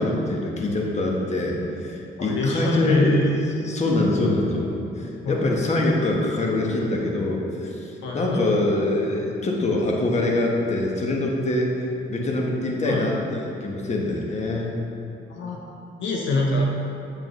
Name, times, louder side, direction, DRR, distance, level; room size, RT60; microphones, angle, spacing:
voice 1, 0.0-1.6 1.8-3.2 3.6-7.9 8.1-14.8, left 2 dB, 35° left, -1 dB, 1.2 m, -24 dB
voice 2, 2.2-3.3 5.2-5.7 8.0-8.5 12.8-13.0 15.3-15.6 16.0-16.6, left 2 dB, 70° left, -1 dB, 0.9 m, -25 dB
7.5 x 7.0 x 3.1 m, 2.8 s
cardioid pair, 90°, 20 cm